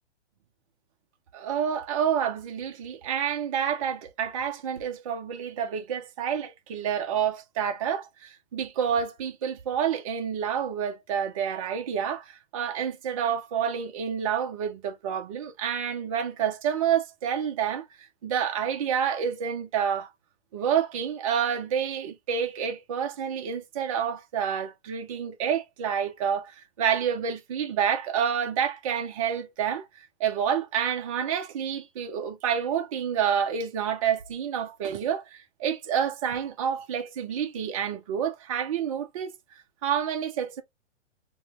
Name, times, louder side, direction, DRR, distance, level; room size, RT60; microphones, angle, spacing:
voice 1, 1.3-20.1 20.5-29.9 30.2-39.3 39.8-40.6, right 8 dB, 30° right, 0.5 m, -28 dB
3.4 x 2.1 x 2.8 m
hypercardioid pair, 150°, 36 cm